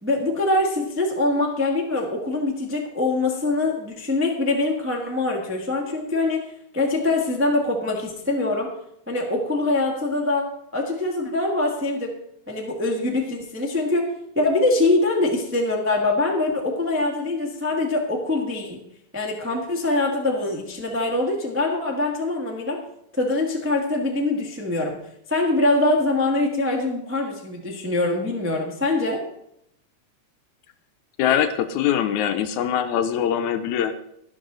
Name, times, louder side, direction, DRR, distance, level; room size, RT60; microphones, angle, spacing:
voice 1, 0.0-6.4 6.7-8.7 9.1-12.1 12.5-14.1 14.3-18.8 19.1-22.8 23.1-25.0 25.3-29.2, left 2 dB, 10° right, 0 dB, 0.5 m, -23 dB
voice 2, 31.2-33.9, left 9 dB, 80° left, 9 dB, 2.0 m, -22 dB
11.5 x 11.5 x 3.9 m, 0.75 s
omnidirectional pair, 3.6 m